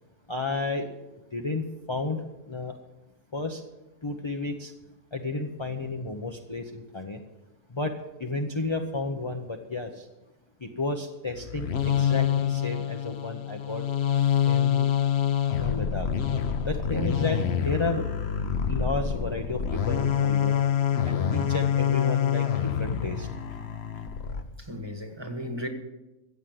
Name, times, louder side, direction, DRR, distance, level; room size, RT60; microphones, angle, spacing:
voice 1, 0.3-0.8 1.3-2.7 3.3-3.6 4.0-4.7 5.1-7.2 7.7-7.9 8.2-10.1 10.6-13.8 14.4-14.9 15.6-16.1 16.7-18.0 18.7-20.6 21.0-23.3, left 3 dB, 25° left, 0.8 m, -32 dB
sound 1, 11.3-24.4, left 9 dB, 50° left, 1.1 m, -26 dB
voice 2, 24.6-25.7, equal, 20° right, 1.6 m, -35 dB
15.0 x 8.3 x 7.7 m
omnidirectional pair, 1.5 m